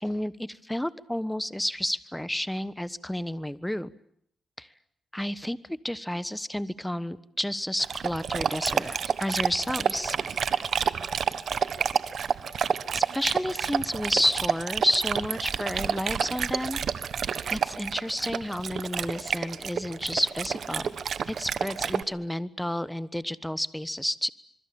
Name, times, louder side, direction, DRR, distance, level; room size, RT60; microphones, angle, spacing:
voice 1, 0.0-3.9 4.6-4.7 5.1-10.5 12.9-16.8 17.5-20.9 21.3-24.3, left 1 dB, 5° left, 16 dB, 1.2 m, -31 dB
Dog, 7.8-22.0, right 7 dB, 65° right, 1.3 m, -29 dB
25.5 x 23.5 x 8.7 m, 0.68 s
cardioid pair, 85°, 0 cm